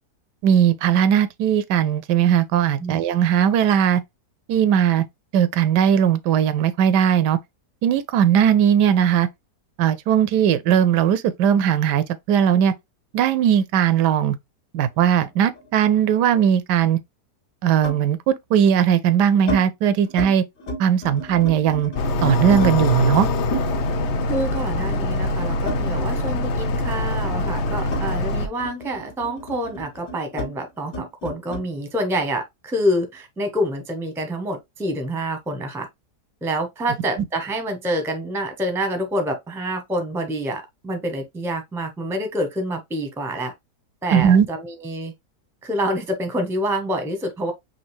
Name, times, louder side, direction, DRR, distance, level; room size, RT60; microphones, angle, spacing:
voice 1, 0.4-4.0 4.5-5.0 5.3-7.4 7.8-9.3 9.8-12.7 13.1-14.4 14.7-17.0 17.6-20.4 20.8-21.9 22.2-23.3 44.1-44.5, right 9 dB, 85° right, 1.2 m, -18 dB
sound 1, 15.0-16.5 17.8-18.1 18.8-19.6 20.0-20.3 20.6-22.8 23.5-26.4 26.7-31.7, right 1 dB, 90° left, 2.9 m, -33 dB
sound 2, 21.9-28.5, left 2 dB, 65° left, 0.7 m, -23 dB
voice 2, 24.2-35.9 36.4-43.5 44.0-45.1 45.6-47.5, equal, ahead, 0.6 m, -27 dB
5.3 x 2.7 x 3.1 m
omnidirectional pair, 1.8 m